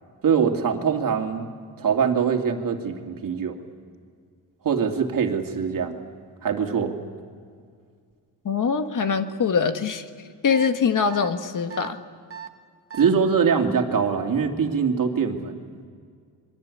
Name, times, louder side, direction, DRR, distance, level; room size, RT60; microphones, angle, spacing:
voice 1, 0.2-1.5 1.8-3.6 4.6-6.0 6.4-6.9 12.9-15.6, right 6 dB, 55° right, 3 dB, 2.7 m, -23 dB
voice 2, 8.4-10.0 10.4-12.0, left 6 dB, 50° left, 8 dB, 1.6 m, -23 dB
sound 1, 10.5-10.7 11.1-11.3 11.7-11.9 12.3-12.5 12.9-13.1, right 8 dB, 35° right, 1.4 m, -37 dB
28.0 x 22.5 x 8.6 m, 2.1 s
cardioid pair, 110°, 40 cm